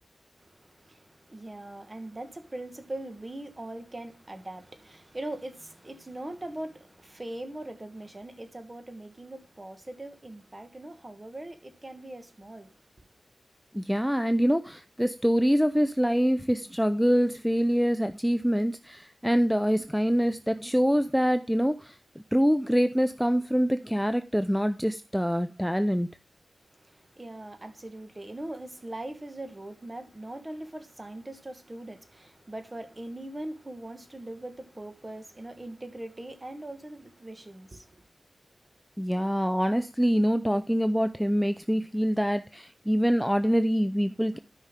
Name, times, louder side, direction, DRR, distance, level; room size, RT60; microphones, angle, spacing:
voice 1, 0.4-12.7 26.9-38.0, right 1 dB, 25° right, 1.3 m, -41 dB
voice 2, 13.7-22.0 22.3-26.2 39.0-44.4, equal, ahead, 0.4 m, -25 dB
13.0 x 5.5 x 3.6 m
wide cardioid pair, 105°, 0 cm